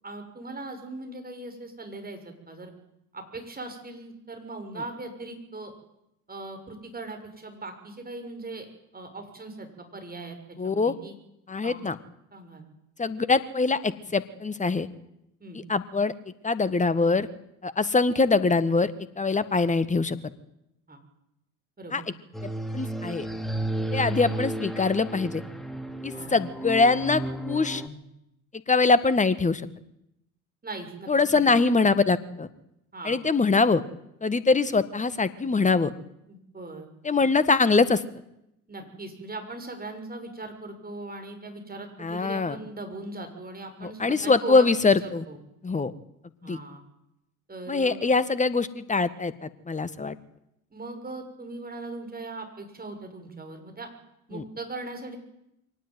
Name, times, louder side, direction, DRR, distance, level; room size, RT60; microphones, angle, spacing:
voice 1, 0.0-2.7 3.1-5.7 6.3-8.7 8.9-10.4 10.6-11.1 11.6-11.8 12.3-12.7 15.4-15.6 20.9-21.0 21.8-22.1 26.1-26.3 30.6-31.5 32.9-33.2 36.3-36.9 38.7-45.4 46.4-46.8 47.5-48.0 50.7-53.9 54.3-55.2, right 2 dB, 20° right, 5 dB, 6.6 m, -39 dB
voice 2, 10.6-10.9 11.5-12.0 13.0-14.9 15.5-16.1 16.4-17.3 17.6-20.2 21.9-22.0 22.4-23.3 23.9-25.4 26.0-27.8 28.7-29.7 31.1-32.5 33.0-33.8 34.2-35.9 37.0-38.0 42.0-42.6 43.8-45.2 45.6-45.9 46.4-46.6 47.7-50.2 54.3-54.4, left 4 dB, 15° left, 15 dB, 1.7 m, -23 dB
sound 1, 22.3-27.9, right 2 dB, ahead, 3.1 m, -33 dB
23.5 x 18.5 x 9.4 m, 0.83 s
figure-of-eight pair, 60°, 43 cm